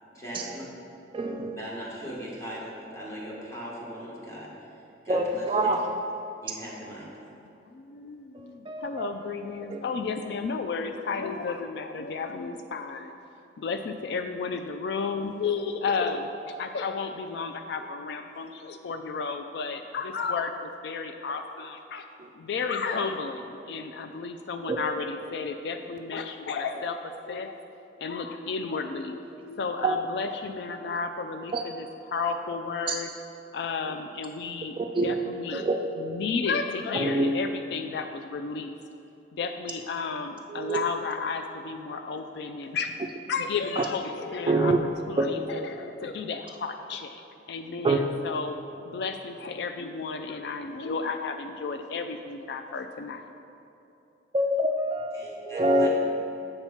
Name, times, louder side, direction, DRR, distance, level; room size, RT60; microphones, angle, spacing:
voice 1, 0.1-0.7 1.5-4.5 5.0-5.8 6.4-7.1 55.1-55.9, equal, 20° left, -6 dB, 1.7 m, -39 dB
voice 2, 1.1-1.6 5.1-5.8 8.7-9.1 9.7-9.8 24.7-24.8 29.8-30.0 31.5-31.6 32.9-33.0 34.8-35.1 35.6-35.8 37.0-37.4 40.5-40.8 43.8-43.9 44.5-44.8 47.8-48.0 54.3-55.9, right 2 dB, 30° right, 3 dB, 0.3 m, -25 dB
voice 3, 7.7-13.1 13.6-22.0 22.4-27.0 27.3-27.6 28.0-33.1 33.5-34.8 35.0-35.7 36.0-38.7 39.3-42.9 43.3-44.8 45.1-47.2 47.5-48.6 48.9-53.2, left 5 dB, 65° left, 7 dB, 0.3 m, -32 dB
7.7 x 4.5 x 5.6 m, 2.9 s
head